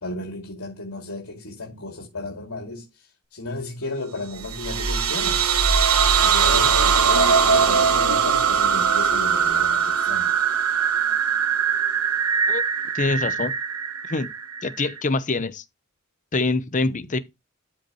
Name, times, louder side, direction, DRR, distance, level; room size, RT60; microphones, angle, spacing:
voice 1, 0.0-2.9 3.3-5.5 6.2-10.3 16.8-17.1, left 2 dB, 90° left, 2.6 m, -34 dB
sound 1, 4.4-15.0, right 6 dB, 85° right, 1.2 m, -21 dB
voice 2, 12.9-13.5 14.1-14.3 14.6-15.6 16.3-17.2, left 3 dB, 35° left, 0.8 m, -24 dB
12.5 x 5.4 x 3.1 m
head